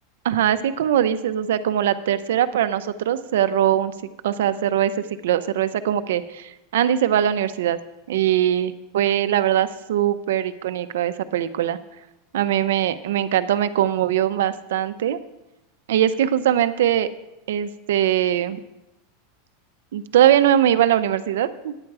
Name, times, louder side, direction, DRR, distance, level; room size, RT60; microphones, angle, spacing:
voice 1, 0.2-3.9 4.2-4.9 5.2-7.8 8.1-11.8 12.3-15.2 15.9-17.1 17.5-18.6 19.9-21.8, right 11 dB, 85° right, 12 dB, 0.6 m, -21 dB
9.8 x 8.6 x 4.8 m, 0.95 s
supercardioid pair, 145°, 0 cm